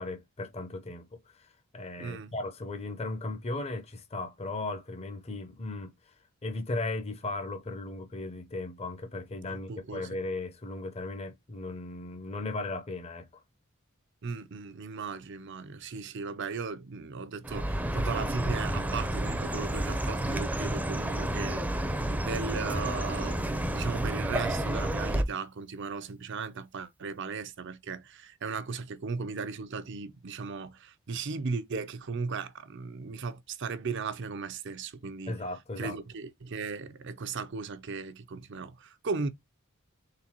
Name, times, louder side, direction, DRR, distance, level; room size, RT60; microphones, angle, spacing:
voice 1, 0.0-5.9 6.4-13.4 35.3-36.0, left 2 dB, 30° left, 0.7 m, -37 dB
voice 2, 2.0-2.3 9.5-10.1 14.2-35.4 35.8-39.3, right 4 dB, 60° right, 0.5 m, -37 dB
Chirp tweet, 17.4-25.2, right 1 dB, 5° right, 0.5 m, -30 dB
3.9 x 3.8 x 2.8 m
head